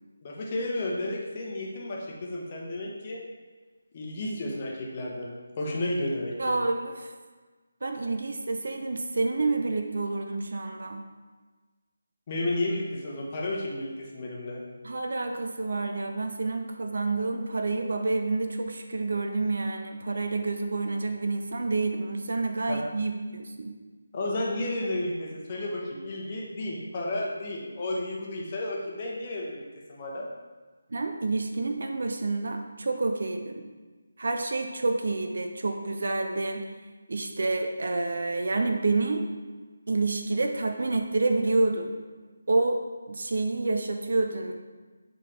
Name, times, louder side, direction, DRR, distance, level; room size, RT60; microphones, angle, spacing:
voice 1, 0.2-3.2 3.9-6.6 12.3-14.6 22.7-22.8 24.1-30.3, left 1 dB, 30° left, -3 dB, 1.0 m, -32 dB
voice 2, 6.4-7.1 7.8-11.0 14.8-23.8 30.9-33.7 34.2-36.7 37.1-39.2 39.9-41.9 42.5-42.8 43.1-44.5, right 3 dB, 50° right, 4 dB, 0.5 m, -28 dB
8.3 x 3.7 x 3.4 m, 1.3 s
figure-of-eight pair, 155°, 0 cm